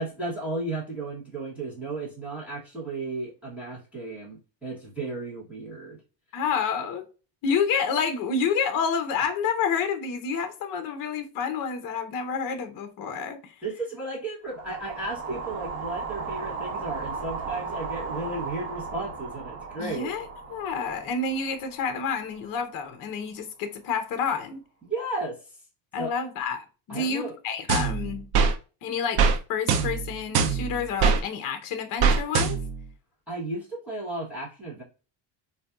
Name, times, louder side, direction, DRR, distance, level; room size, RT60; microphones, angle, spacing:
voice 1, 0.0-6.0 13.6-20.1 24.8-25.6 26.0-26.1 26.9-27.4 33.3-34.8, right 2 dB, 5° right, 0.8 m, -34 dB
voice 2, 6.3-7.1 7.4-13.5 19.8-24.6 25.9-28.3 28.8-32.6, left 5 dB, 40° left, 0.6 m, -29 dB
sound 1, 14.5-22.7, right 4 dB, 85° right, 1.1 m, -36 dB
sound 2, 27.7-28.5 29.2-29.4 29.7-31.2 32.0-32.8, right 5 dB, 55° right, 0.5 m, -22 dB
4.1 x 2.2 x 2.3 m
cardioid pair, 175°, 49 cm